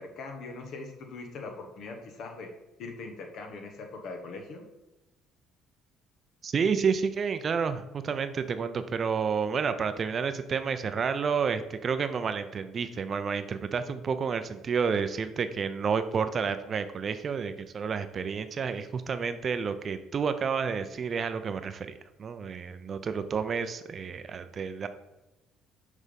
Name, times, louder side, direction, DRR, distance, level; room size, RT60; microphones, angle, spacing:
voice 1, 0.0-2.5 2.8-4.7, left 3 dB, 65° left, 3 dB, 1.2 m, -41 dB
voice 2, 6.4-24.9, right 6 dB, 45° right, 10 dB, 0.6 m, -30 dB
6.4 x 3.6 x 5.2 m, 0.97 s
hypercardioid pair, 65°, 0 cm